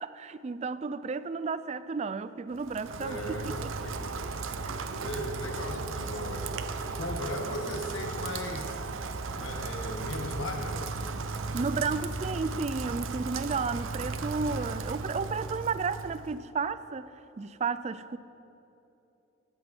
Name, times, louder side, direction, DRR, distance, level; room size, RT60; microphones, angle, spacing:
voice 1, 0.0-3.7 4.6-4.8 11.5-18.2, right 4 dB, 35° right, 14 dB, 0.3 m, -33 dB
Rain, 2.5-16.4, right 4 dB, 80° right, 0.7 m, -36 dB
voice 2, 2.9-4.3 4.9-8.8 9.3-10.8, left 1 dB, 75° left, 2 dB, 1.9 m, -37 dB
17.0 x 13.5 x 4.5 m, 3.0 s
head